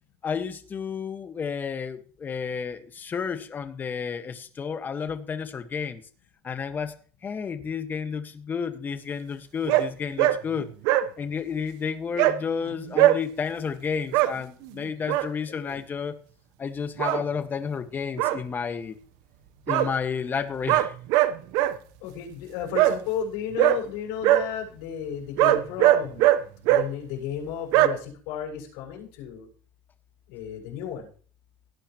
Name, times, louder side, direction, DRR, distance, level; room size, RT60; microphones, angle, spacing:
voice 1, 0.2-6.0 6.4-6.9 7.2-10.7 11.2-16.2 16.6-19.0 19.7-20.9, left 6 dB, 30° left, 8 dB, 1.6 m, -31 dB
sound 1, 9.7-9.8 10.2-10.3 10.6-11.0 12.2-12.3 12.9-13.2 14.1-14.3 14.8-15.3 17.0-17.2 18.2-18.4 19.7-19.9 20.7-21.7 22.7-22.9 23.6-23.8 24.2-24.4 25.4-26.4 26.7-26.8 27.7-27.9, right 15 dB, 70° right, 1.0 m, -19 dB
voice 2, 22.0-26.3 26.7-29.5 30.3-31.1, left 8 dB, 75° left, 0 dB, 6.5 m, -33 dB
17.5 x 9.9 x 3.1 m, 0.42 s
supercardioid pair, 115°, 7 cm